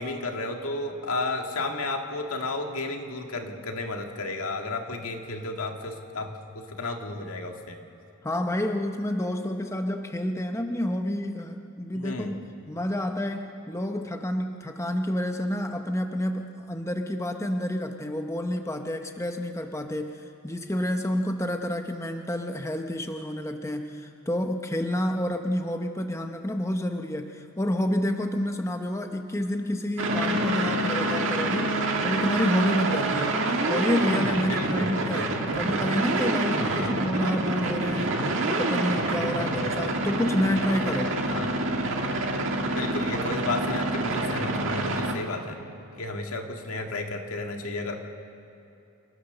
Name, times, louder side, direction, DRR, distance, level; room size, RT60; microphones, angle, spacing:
voice 1, 0.0-7.8 11.9-12.4 33.0-33.4 34.5-35.6 36.7-37.0 39.4-39.7 41.2-41.6 42.7-45.6 46.0-47.9, left 2 dB, 75° left, 3 dB, 2.0 m, -33 dB
voice 2, 8.2-31.8 32.0-33.4 33.7-38.2 38.5-41.2, left 1 dB, 15° left, 5 dB, 0.7 m, -29 dB
sound 1, 30.0-45.1, right 2 dB, 60° right, 1.8 m, -27 dB
28.0 x 14.0 x 6.7 m, 2.8 s
head